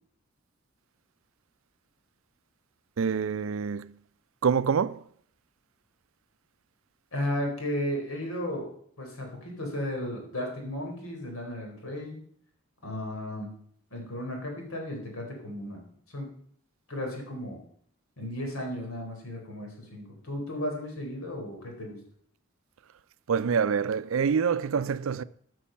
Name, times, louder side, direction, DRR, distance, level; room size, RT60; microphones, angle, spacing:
voice 1, 3.0-3.9 4.4-5.0 23.3-25.2, right 6 dB, 70° right, 0.4 m, -26 dB
voice 2, 7.1-8.7 9.0-12.2 12.8-13.5 13.9-15.8 16.1-16.3 16.9-17.6 18.2-22.0, left 1 dB, 90° left, 4.1 m, -34 dB
13.0 x 6.2 x 5.7 m
head